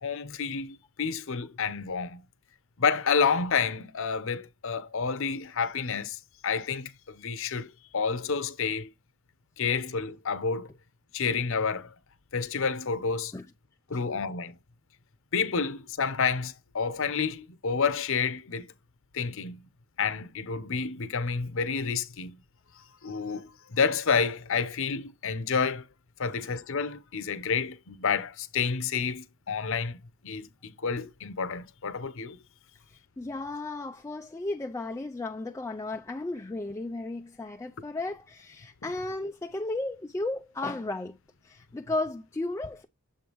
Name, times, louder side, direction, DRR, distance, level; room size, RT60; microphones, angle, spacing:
voice 1, 0.0-2.2 2.8-8.9 9.6-10.7 11.1-11.9 12.3-13.3 13.9-14.6 15.3-18.7 19.1-19.7 20.0-22.4 23.0-25.9 26.2-32.4, left 5 dB, 65° left, 0.8 m, -29 dB
voice 2, 32.9-41.2 41.4-42.8, left 2 dB, 15° left, 0.4 m, -34 dB
7.2 x 5.3 x 3.0 m
head